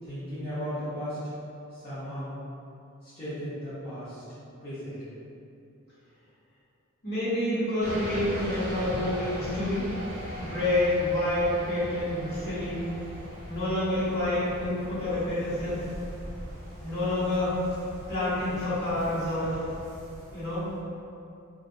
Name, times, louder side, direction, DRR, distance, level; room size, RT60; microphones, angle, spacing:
voice 1, 0.0-1.3 1.7-2.3 3.0-4.2 4.6-4.9, equal, 30° left, -16 dB, 0.8 m, -36 dB
voice 2, 7.0-9.8 10.4-12.9 13.5-15.8 16.8-17.6 18.1-19.6 20.3-20.7, left 1 dB, 50° left, -13 dB, 1.2 m, -28 dB
sound 1, 7.8-20.8, equal, 50° right, 0.8 m, -40 dB
2.5 x 2.4 x 2.6 m, 2.6 s
head